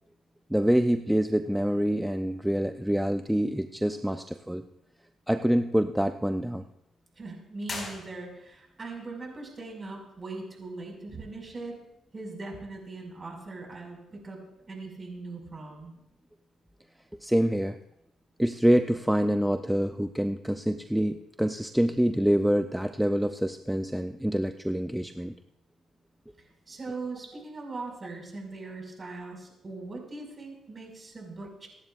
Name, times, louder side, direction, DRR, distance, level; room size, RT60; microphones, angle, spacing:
voice 1, 0.5-4.6 5.3-6.6 17.2-17.8 18.4-25.3, equal, 5° right, 8 dB, 0.5 m, -26 dB
voice 2, 7.2-11.8 12.1-14.4 14.7-15.9 26.4-31.7, right 3 dB, 30° right, 1 dB, 5.3 m, -40 dB
sound 1, 7.6-8.7, left 3 dB, 45° left, 5.4 m, -39 dB
27.0 x 11.0 x 2.5 m, 0.85 s
cardioid pair, 90°, 0 cm